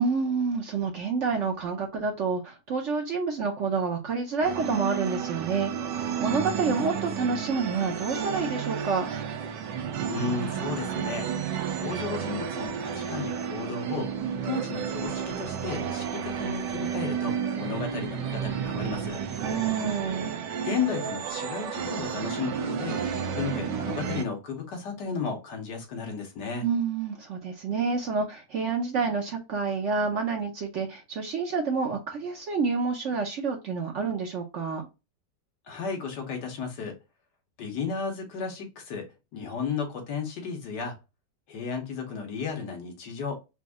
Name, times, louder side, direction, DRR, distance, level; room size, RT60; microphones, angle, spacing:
voice 1, 0.0-9.1 19.4-20.3 26.6-34.9, right 5 dB, 60° right, 0.8 m, -28 dB
sound 1, 4.4-24.2, right 7 dB, 85° right, 1.4 m, -32 dB
voice 2, 10.1-11.3 11.7-14.1 14.4-19.2 20.6-23.0 23.3-26.6 35.7-37.0 37.6-40.9 41.5-43.4, left 5 dB, 75° left, 1.7 m, -34 dB
4.1 x 2.6 x 3.5 m
omnidirectional pair, 1.8 m